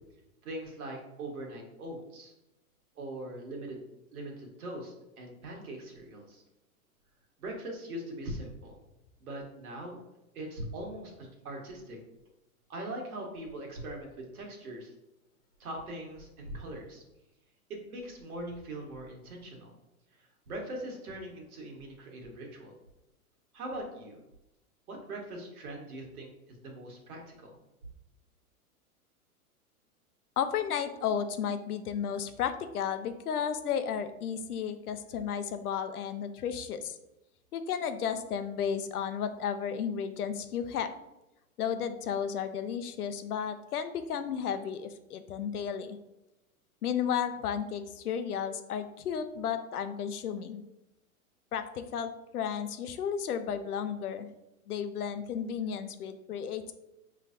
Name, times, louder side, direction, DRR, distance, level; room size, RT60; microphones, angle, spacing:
voice 1, 0.4-2.3 2.9-3.8 4.1-6.4 7.4-8.8 9.2-10.0 10.3-12.0 12.7-14.9 15.6-17.0 17.7-19.7 20.2-22.8 23.5-24.2 24.9-26.3 26.6-27.5, right 1 dB, 75° right, 0 dB, 1.5 m, -41 dB
voice 2, 30.4-37.0 37.5-40.9 41.6-46.0 46.8-50.6 51.5-54.3 54.7-56.7, left 8 dB, 90° left, 9 dB, 0.6 m, -33 dB
5.7 x 3.2 x 2.6 m, 0.94 s
hypercardioid pair, 120°, 44 cm